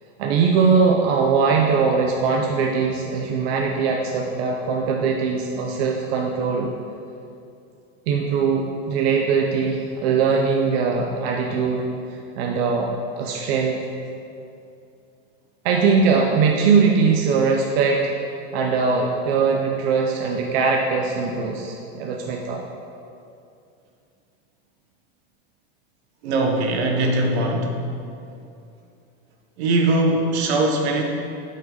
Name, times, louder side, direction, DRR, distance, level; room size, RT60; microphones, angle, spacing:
voice 1, 0.2-6.7 8.1-11.8 12.1-12.9 13.2-13.8 15.6-18.1 18.5-22.6, right 5 dB, 65° right, 0 dB, 0.8 m, -21 dB
voice 2, 26.2-27.8 29.6-31.0, right 2 dB, 90° right, 1 dB, 1.3 m, -21 dB
9.1 x 5.4 x 4.0 m, 2.6 s
supercardioid pair, 140°, 32 cm